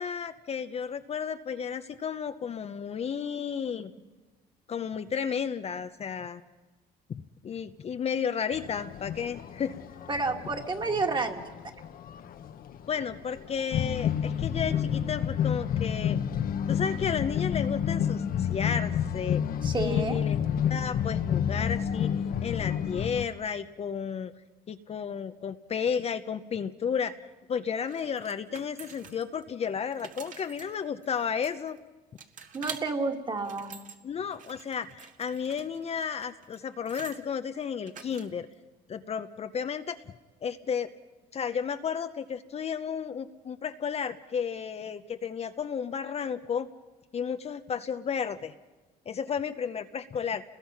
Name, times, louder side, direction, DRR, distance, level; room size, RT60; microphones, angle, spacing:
voice 1, 0.0-3.9 4.7-6.4 7.1-9.8 12.9-16.2 16.7-19.4 19.8-22.1 22.4-24.3 24.7-27.2 27.5-31.8 34.0-38.5 38.9-40.0 40.4-40.9 41.3-46.7 47.1-48.5 49.1-50.4, left 7 dB, 40° left, 9 dB, 0.7 m, -33 dB
sound 1, 8.5-23.3, left 8 dB, 60° left, 1.1 m, -30 dB
voice 2, 10.1-11.4 19.6-20.2 32.5-33.7, right 3 dB, 25° right, 4 dB, 2.2 m, -30 dB
sound 2, 27.9-29.4 29.8-31.8 32.2-32.8 33.3-34.0 34.3-37.2 37.9-38.5, right 7 dB, 50° right, 1.8 m, -47 dB
29.5 x 20.5 x 5.9 m, 1.2 s
cardioid pair, 110°, 17 cm